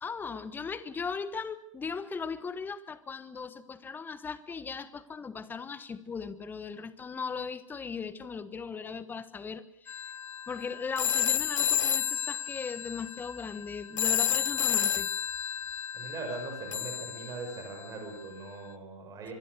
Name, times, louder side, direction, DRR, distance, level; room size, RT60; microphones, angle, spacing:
voice 1, 0.0-10.0 10.5-15.1, left 5 dB, 10° left, 15 dB, 1.2 m, -38 dB
sound 1, 9.9-17.9, left 8 dB, 70° left, 1.1 m, -31 dB
voice 2, 15.9-19.3, right 3 dB, 20° right, 4 dB, 6.5 m, -40 dB
24.5 x 22.5 x 6.6 m, 0.68 s
figure-of-eight pair, 115°, 16 cm